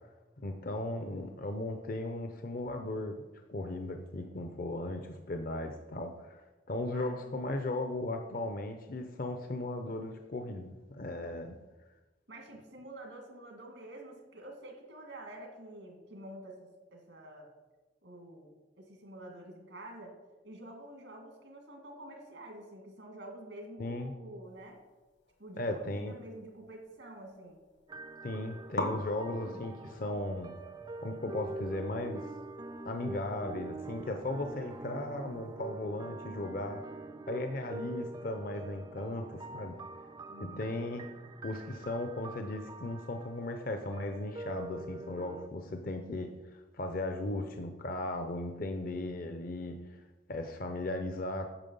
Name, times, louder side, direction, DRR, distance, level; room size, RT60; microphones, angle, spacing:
voice 1, 0.4-3.2 3.5-6.4 6.7-11.6 23.8-24.1 25.6-26.1 28.2-30.5 31.0-32.3 32.8-36.8 37.3-39.8 40.4-41.0 41.4-49.8 50.3-51.5, left 2 dB, 50° left, 6 dB, 0.6 m, -37 dB
voice 2, 6.9-7.4 12.3-17.5 18.0-20.1 20.4-24.8 25.4-27.6 40.3-40.7, right 1 dB, 85° right, 2 dB, 1.9 m, -48 dB
sound 1, 25.2-27.0 27.3-27.9 28.2-28.3 28.7-35.5, left 1 dB, 70° left, 1.5 m, -44 dB
sound 2, 27.9-45.5, right 2 dB, 20° right, 0.4 m, -45 dB
9.0 x 6.2 x 5.4 m, 1.2 s
head